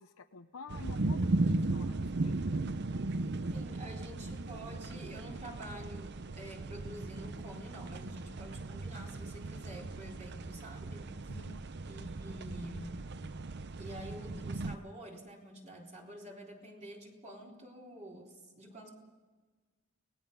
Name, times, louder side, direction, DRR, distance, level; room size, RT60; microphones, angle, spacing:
voice 1, 0.0-2.6 11.3-11.6, left 4 dB, 80° left, 5 dB, 0.8 m, -50 dB
sound 1, 0.7-14.8, right 2 dB, 55° right, 0.7 m, -37 dB
voice 2, 3.5-11.3 11.9-13.1 13.8-18.9, right 1 dB, 35° right, -2 dB, 3.9 m, -48 dB
29.0 x 19.0 x 5.5 m, 1.3 s
head